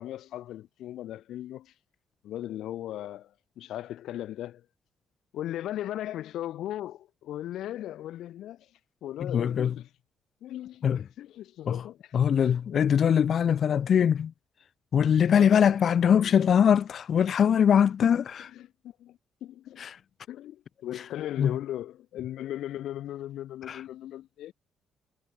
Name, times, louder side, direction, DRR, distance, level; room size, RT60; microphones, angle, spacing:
voice 1, 0.0-1.7 2.2-4.7 5.3-8.7 9.0-9.9 10.4-10.9 11.2-12.1 12.7-12.9 15.3-16.3 18.5-19.9 20.3-24.5, left 13 dB, 80° left, 4.3 m, -38 dB
voice 2, 9.2-9.7 10.8-11.0 11.7-11.8 12.1-14.3 14.9-18.5 19.8-20.0 21.4-21.6 23.7-23.8, left 8 dB, 55° left, 1.1 m, -22 dB
cardioid pair, 90°, 0 cm